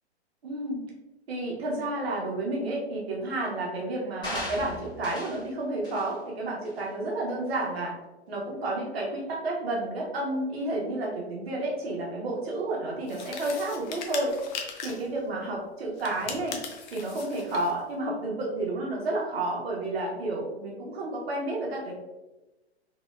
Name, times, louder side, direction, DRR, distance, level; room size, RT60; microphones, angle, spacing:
voice 1, 0.4-0.8 1.3-7.9 8.3-14.4 14.8-16.6 16.9-21.9, right 2 dB, 65° right, -2 dB, 1.2 m, -31 dB
sound 1, 4.2-5.5 5.8-6.1 6.7-6.8, left 1 dB, 15° left, 1.4 m, -37 dB
sound 2, 13.1-15.1 16.0-17.8, left 5 dB, 40° left, 0.7 m, -39 dB
4.3 x 2.8 x 2.4 m, 1.1 s
figure-of-eight pair, 110°, 34 cm